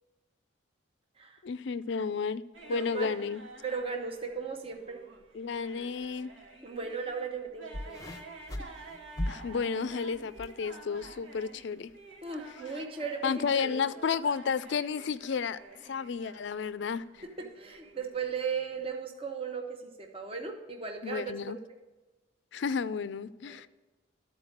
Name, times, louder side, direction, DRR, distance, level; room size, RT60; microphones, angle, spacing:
voice 1, 1.4-2.4 2.7-3.4 5.3-6.3 9.3-11.9 13.2-17.0 21.0-21.6 22.5-23.7, left 6 dB, 65° left, 0.4 m, -32 dB
sound 1, 2.5-18.9, right 2 dB, 80° right, 1.6 m, -51 dB
voice 2, 2.6-3.1 3.6-5.0 6.6-8.1 12.2-13.2 13.5-13.7 17.6-21.6 23.5-23.7, right 5 dB, 30° right, 0.8 m, -37 dB
sound 2, 7.7-10.6 10.9-11.4 12.1-12.2, left 1 dB, 20° left, 0.7 m, -38 dB
13.0 x 4.4 x 6.5 m
head